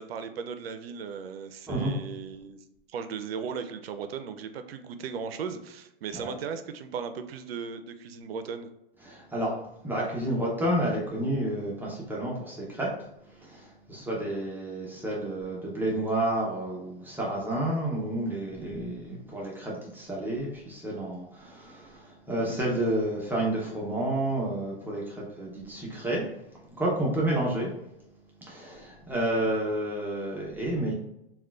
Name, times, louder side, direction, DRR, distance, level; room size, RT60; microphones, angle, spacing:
voice 1, 0.0-2.6 2.9-8.7, right 6 dB, 80° right, 9 dB, 0.5 m, -37 dB
voice 2, 9.0-9.6 9.8-27.7 28.4-30.9, right 1 dB, 5° right, -4 dB, 0.6 m, -30 dB
3.7 x 2.3 x 2.2 m, 0.86 s
hypercardioid pair, 125°, 30 cm